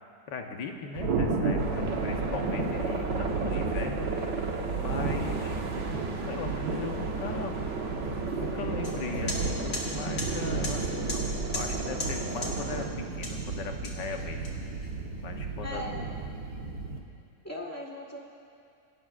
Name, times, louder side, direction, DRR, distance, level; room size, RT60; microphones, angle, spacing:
voice 1, 0.3-4.1 4.8-5.6 6.3-7.6 8.3-12.9 13.2-14.5 15.2-16.3, left 4 dB, 90° left, 4 dB, 1.7 m, -38 dB
Thunder, 0.9-17.0, right 4 dB, 65° right, 1.7 m, -33 dB
sound 1, 1.6-12.9, right 3 dB, 50° right, 1.3 m, -35 dB
sound 2, 8.8-8.9 9.3-9.4 9.7-9.8 10.2-10.3 10.6-10.7 11.1-11.2 11.5-11.7 12.0-12.1 12.4-12.5 13.2-13.4 13.8-14.9, left 2 dB, 65° left, 2.4 m, -35 dB
voice 2, 15.6-16.0 17.4-18.2, left 1 dB, 10° left, -2 dB, 1.3 m, -38 dB
28.5 x 12.0 x 2.5 m, 2.6 s
omnidirectional pair, 1.8 m